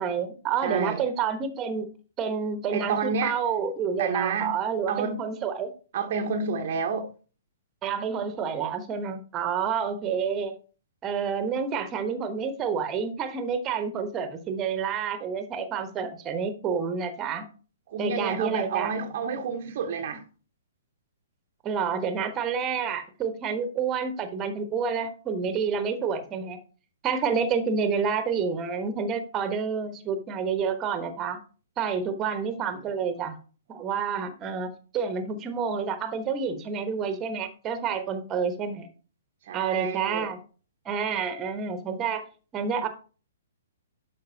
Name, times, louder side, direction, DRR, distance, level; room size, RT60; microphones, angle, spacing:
voice 1, 0.0-1.9 2.2-5.7 7.8-10.5 11.0-17.4 18.0-18.9 21.6-26.6 27.0-31.4 31.8-33.4 33.7-38.9 39.5-40.4 40.8-42.2 42.5-42.9, right 6 dB, 20° right, 1.1 m, -29 dB
voice 2, 0.6-1.0 2.7-3.4 4.0-4.5 4.9-5.2 5.9-7.1 17.9-20.2 25.4-25.5 39.5-40.3, right 5 dB, 45° right, 0.9 m, -29 dB
11.5 x 5.3 x 2.8 m
figure-of-eight pair, 120°, 0 cm